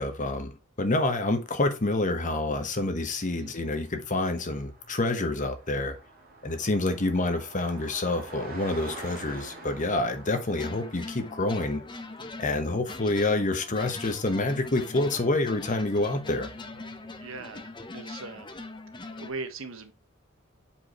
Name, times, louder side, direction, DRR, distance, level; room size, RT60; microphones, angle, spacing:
voice 1, 0.0-6.0 6.4-11.8 12.4-16.5, left 2 dB, 35° left, 1.1 m, -27 dB
Car passing by, 2.2-18.1, right 2 dB, 45° right, 2.0 m, -48 dB
voice 2, 3.4-3.8 17.2-18.5 19.2-19.9, right 3 dB, 70° right, 1.2 m, -40 dB
sound 1, 10.5-19.3, left 2 dB, 20° left, 0.7 m, -42 dB
7.0 x 5.2 x 3.0 m
head